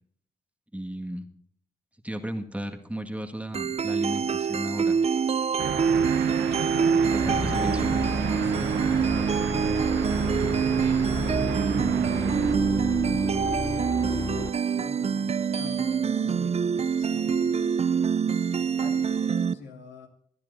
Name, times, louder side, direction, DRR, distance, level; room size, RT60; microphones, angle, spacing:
voice 1, 0.7-1.3 2.0-5.0 7.0-7.9, right 1 dB, 5° right, 4 dB, 1.8 m, -34 dB
sound 1, 3.5-19.5, right 6 dB, 35° right, 0.5 m, -25 dB
sound 2, 5.6-12.6, right 8 dB, 85° right, 1.0 m, -32 dB
voice 2, 6.5-8.0 8.4-8.9 9.6-17.8 18.8-20.1, left 4 dB, 80° left, 2 dB, 2.8 m, -45 dB
sound 3, 7.1-14.6, left 3 dB, 20° left, 0.7 m, -33 dB
24.5 x 10.0 x 2.7 m, 0.65 s
supercardioid pair, 50°, 18 cm